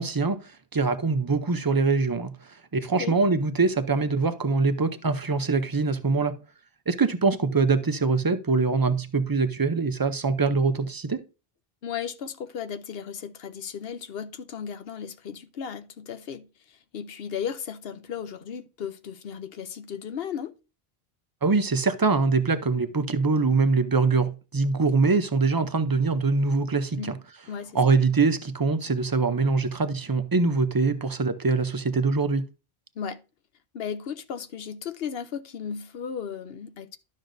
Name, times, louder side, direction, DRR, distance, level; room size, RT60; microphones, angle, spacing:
voice 1, 0.0-2.3 2.7-6.4 6.9-11.2 21.4-27.2 27.7-32.4, right 4 dB, 25° right, 0.5 m, -23 dB
voice 2, 11.8-20.5 27.0-27.1 27.5-28.0 33.0-33.2 33.7-37.0, left 7 dB, 70° left, 0.9 m, -35 dB
12.0 x 6.3 x 2.6 m
omnidirectional pair, 1.1 m